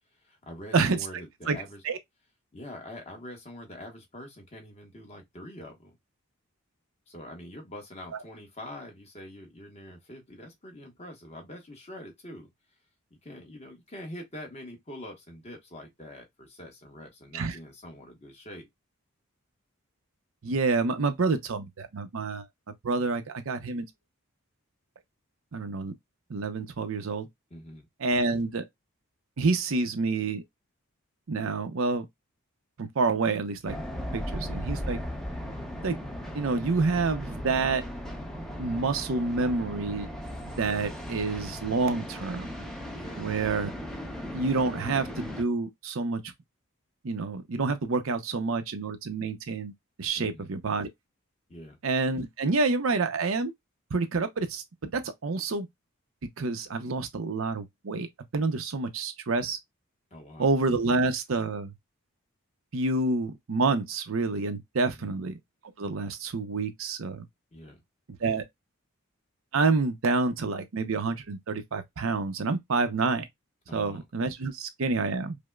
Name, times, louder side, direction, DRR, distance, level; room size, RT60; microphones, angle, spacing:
voice 1, 0.1-1.8 2.5-6.0 7.1-12.5 13.1-18.7 27.5-27.9 35.3-35.6 42.9-43.2 50.2-50.5 51.5-51.8 60.1-60.5 64.9-65.2 67.5-67.8 73.7-74.0, left 1 dB, 30° left, 1.0 m, -45 dB
voice 2, 20.4-22.5 22.8-23.9 25.5-25.9 26.3-27.3 28.0-28.6 29.4-30.4 31.3-32.1 32.8-33.8 34.1-35.0 35.8-36.0 36.3-37.8 38.6-40.1 40.4-42.5 43.2-43.7 44.3-46.2 47.0-49.7 50.0-50.9 51.8-53.5 53.9-55.7 56.4-58.1 58.3-59.6 60.4-61.7 62.7-65.4 65.8-67.2 68.2-68.4 69.5-73.3 73.7-75.4, right 3 dB, 65° right, 0.6 m, -28 dB
sound 1, 33.7-45.4, equal, ahead, 0.5 m, -37 dB
5.0 x 2.0 x 2.2 m
head